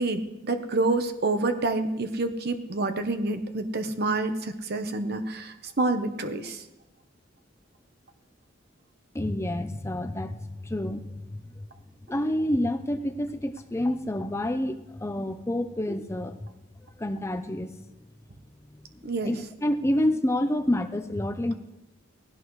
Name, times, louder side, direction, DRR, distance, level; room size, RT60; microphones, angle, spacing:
voice 1, 0.0-6.6 19.0-19.4, right 2 dB, 55° right, 7 dB, 1.0 m, -28 dB
voice 2, 9.1-10.3 10.6-11.0 11.3-11.4 12.1-16.3 17.0-17.7 19.2-21.5, left 1 dB, 15° left, 8 dB, 0.6 m, -28 dB
18.5 x 16.5 x 3.2 m, 1.0 s
head